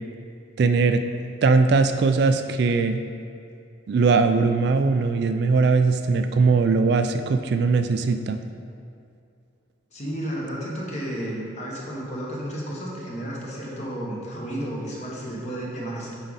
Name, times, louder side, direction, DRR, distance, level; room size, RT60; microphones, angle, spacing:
voice 1, 0.6-1.0 1.4-3.0 3.9-8.4, right 4 dB, 55° right, 8 dB, 0.3 m, -20 dB
voice 2, 9.9-16.2, right 1 dB, 35° left, -4 dB, 1.3 m, -32 dB
7.8 x 5.0 x 4.1 m, 2.5 s
head